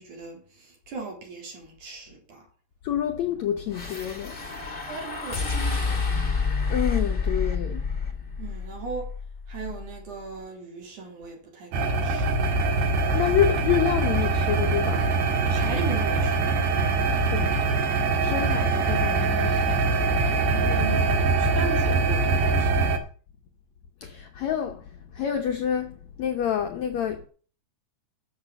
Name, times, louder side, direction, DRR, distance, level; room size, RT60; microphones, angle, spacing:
voice 1, 0.0-2.5 4.9-6.3 8.4-9.1 9.5-12.3 15.4-16.5 18.1-18.4 20.3-22.8, right 4 dB, 50° right, 5.2 m, -38 dB
voice 2, 2.8-4.4 6.7-7.8 13.1-15.1 17.3-17.6 18.2-19.9 24.0-24.8 25.1-27.3, left 9 dB, 90° left, 1.5 m, -28 dB
sound 1, 3.7-10.1, left 4 dB, 70° left, 0.5 m, -29 dB
sound 2, 11.7-23.0, right 3 dB, 90° right, 3.9 m, -23 dB
11.0 x 7.1 x 7.8 m
omnidirectional pair, 4.6 m